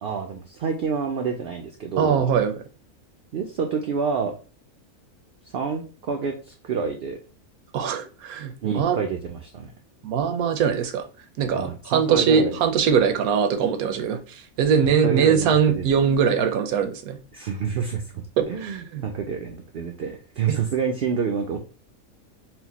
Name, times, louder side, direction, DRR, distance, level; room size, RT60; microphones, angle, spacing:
voice 1, 0.0-2.3 3.3-4.3 5.5-7.2 8.6-9.7 11.5-12.7 14.8-15.9 17.3-21.6, right 6 dB, 65° right, 0.6 m, -28 dB
voice 2, 2.0-2.5 7.7-9.0 10.0-11.0 11.4-17.2 18.4-19.0 20.5-20.6, right 7 dB, 80° right, 1.1 m, -22 dB
4.4 x 2.2 x 4.0 m
omnidirectional pair, 1.5 m